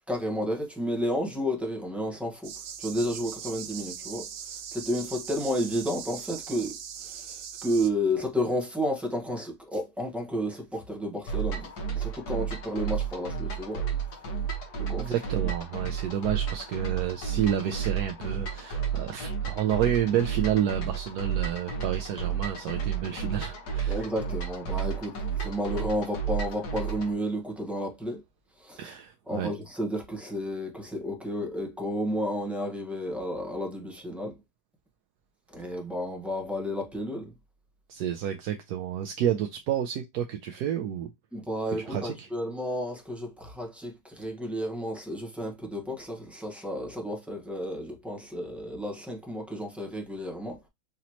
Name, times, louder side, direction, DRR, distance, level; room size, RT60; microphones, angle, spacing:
voice 1, 0.1-2.5 2.8-4.3 4.7-13.9 14.8-15.1 23.9-28.2 28.6-28.9 29.3-34.4 35.5-37.3 41.3-50.7, equal, ahead, 0.9 m, -32 dB
sound 1, 2.4-7.9, right 8 dB, 90° right, 0.5 m, -40 dB
sound 2, 11.3-27.1, right 7 dB, 65° left, 1.8 m, -32 dB
voice 2, 15.0-24.0 28.8-29.5 37.9-41.1 41.9-42.3, right 10 dB, 70° right, 1.1 m, -30 dB
5.1 x 3.0 x 2.8 m
omnidirectional pair, 1.9 m